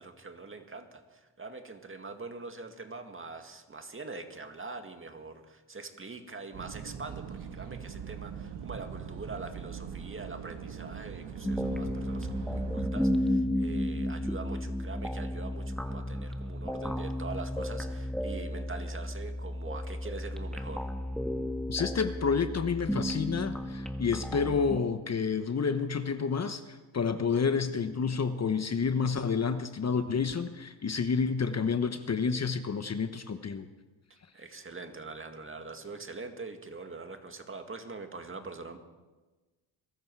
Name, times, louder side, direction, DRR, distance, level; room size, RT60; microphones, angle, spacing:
voice 1, 0.0-20.9 34.1-38.8, right 3 dB, 25° right, 6 dB, 2.1 m, -43 dB
sound 1, 6.5-12.9, right 7 dB, 60° right, 1.7 m, -42 dB
sound 2, 11.4-24.8, equal, ahead, 1.6 m, -33 dB
voice 2, 21.7-33.7, left 5 dB, 35° left, 9 dB, 1.1 m, -29 dB
22.5 x 13.5 x 4.8 m, 1.2 s
supercardioid pair, 65°, 45 cm